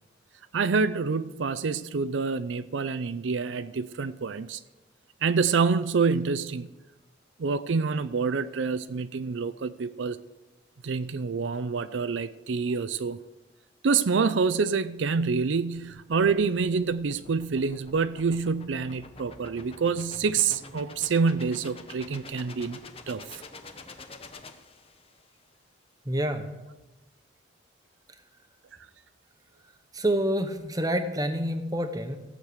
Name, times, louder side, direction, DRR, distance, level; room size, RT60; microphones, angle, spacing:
voice 1, 0.5-4.6 5.2-6.7 7.4-10.2 10.8-13.2 13.8-22.8 23.1-23.4, right 5 dB, 80° right, 0.5 m, -27 dB
sound 1, 15.5-25.3, left 3 dB, 30° left, 0.9 m, -47 dB
voice 2, 26.0-26.5 29.9-32.2, right 1 dB, 20° right, 1.0 m, -27 dB
15.0 x 6.5 x 8.0 m
head